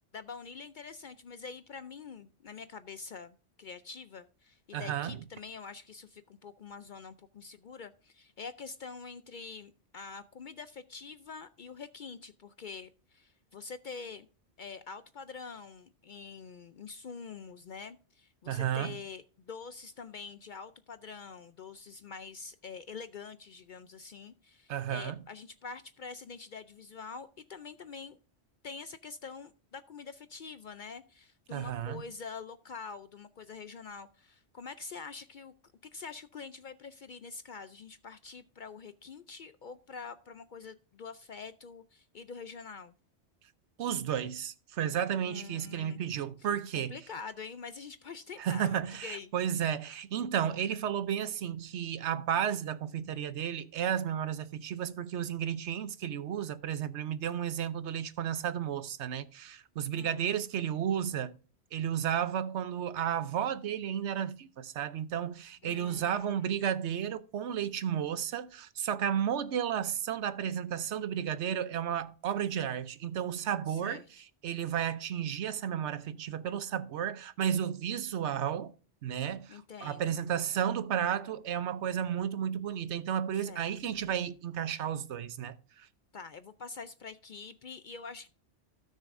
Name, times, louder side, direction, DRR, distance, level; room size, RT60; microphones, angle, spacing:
voice 1, 0.1-14.3 14.6-28.2 28.6-35.5 35.8-43.0 45.2-46.0 46.4-46.5 46.8-49.3 59.9-60.3 65.6-66.5 73.7-74.1 79.5-80.1 83.4-83.7 86.1-88.3, left 5 dB, 60° left, 0.5 m, -45 dB
voice 2, 4.7-5.2 18.5-19.0 24.7-25.2 31.5-32.0 43.8-46.9 48.4-61.3 61.7-78.7 79.0-85.9, right 9 dB, 75° right, 1.0 m, -33 dB
16.5 x 6.4 x 2.5 m
omnidirectional pair, 1.2 m